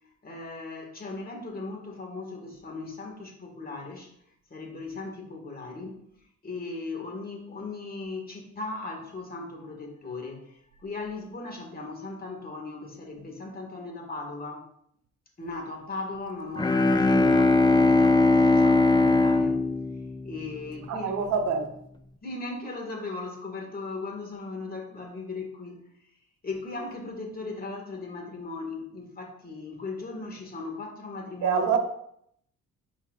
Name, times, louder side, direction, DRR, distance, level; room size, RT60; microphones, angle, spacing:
voice 1, 0.2-4.1 4.5-6.0 6.4-14.6 15.4-19.6 20.2-21.2 22.2-25.8 26.4-31.6, left 3 dB, 30° left, 1.9 m, -37 dB
Bowed string instrument, 16.6-20.9, left 2 dB, 15° left, 0.5 m, -21 dB
voice 2, 20.9-21.7 31.4-31.8, right 6 dB, 70° right, 1.1 m, -25 dB
10.0 x 4.6 x 2.5 m
cardioid pair, 90°, 30 cm